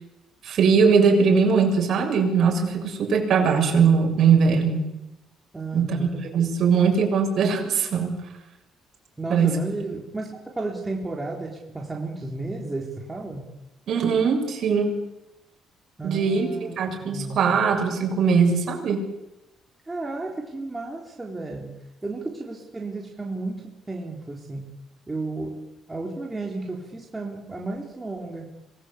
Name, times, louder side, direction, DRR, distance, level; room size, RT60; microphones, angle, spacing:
voice 1, 0.4-4.9 5.7-8.1 9.3-9.6 13.9-15.0 16.0-16.5 16.8-19.0, right 5 dB, 60° right, 2 dB, 7.5 m, -20 dB
voice 2, 5.5-6.1 9.2-13.5 16.0-17.6 19.9-21.7 22.0-24.7 25.1-25.6 25.9-28.5, right 2 dB, 15° right, -1 dB, 4.0 m, -33 dB
26.5 x 20.5 x 8.5 m, 0.95 s
cardioid pair, 110°, 0 cm